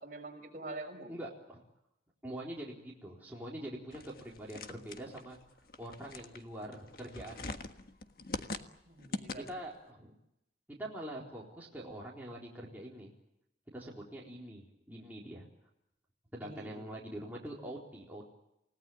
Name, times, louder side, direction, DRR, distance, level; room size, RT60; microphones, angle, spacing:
voice 1, 0.0-1.1 8.9-9.5 16.4-16.7, right 2 dB, 45° right, 3 dB, 5.9 m, -45 dB
voice 2, 1.1-1.6 2.2-5.4 5.8-7.6 9.3-10.1 10.8-13.1 13.7-15.5 16.3-18.3, right 1 dB, 10° right, -4 dB, 4.0 m, -44 dB
sound 1, 3.9-9.8, left 2 dB, 55° left, 1.5 m, -43 dB
29.0 x 18.0 x 9.2 m, 0.85 s
head